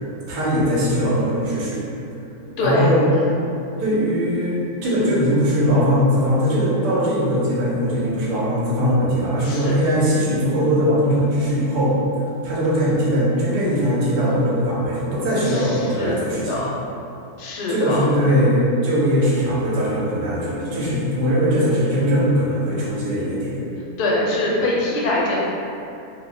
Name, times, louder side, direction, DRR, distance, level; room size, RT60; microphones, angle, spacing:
voice 1, 0.3-1.8 2.5-3.1 3.8-16.7 17.7-23.6, equal, 85° right, -7 dB, 1.4 m, -20 dB
voice 2, 2.6-3.3 9.4-9.8 15.4-16.2 16.5-16.7 17.4-18.1 24.0-25.4, left 1 dB, 75° left, -4 dB, 1.1 m, -23 dB
3.0 x 2.1 x 3.7 m, 2.7 s
omnidirectional pair, 1.7 m